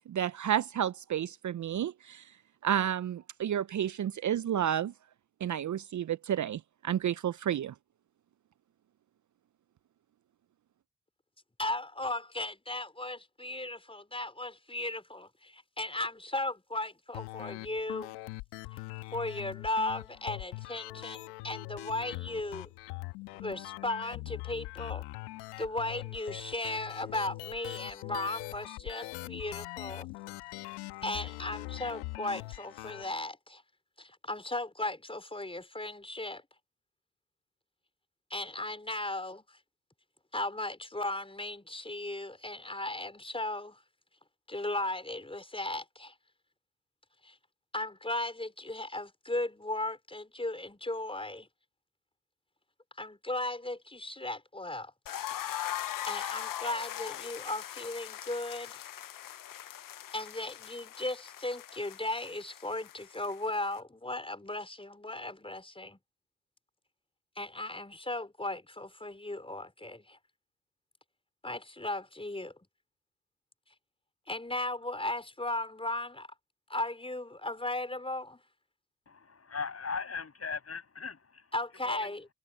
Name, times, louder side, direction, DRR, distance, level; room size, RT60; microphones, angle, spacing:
voice 1, 0.1-2.3 2.6-4.9 5.4-7.7, right 10 dB, 45° right, 0.8 m, -31 dB
voice 2, 11.6-18.2 18.7-18.8 19.1-22.7 23.4-25.1 25.6-30.1 31.0-33.6 34.0-36.4 38.3-39.6 40.3-43.8 44.5-46.1 47.2-47.4 47.7-51.5 53.0-54.9 56.1-58.9 60.1-66.0 67.4-70.2 71.4-72.5 74.3-76.3 76.7-78.4 81.5-82.3, left 2 dB, 15° left, 5.2 m, -36 dB
sound 1, 17.1-33.1, left 21 dB, 80° left, 1.6 m, -42 dB
sound 2, 55.1-63.8, left 12 dB, 55° left, 1.1 m, -40 dB
voice 3, 79.1-81.5 81.7-82.1, left 5 dB, 35° left, 6.9 m, -39 dB
hypercardioid pair, 45°, 39 cm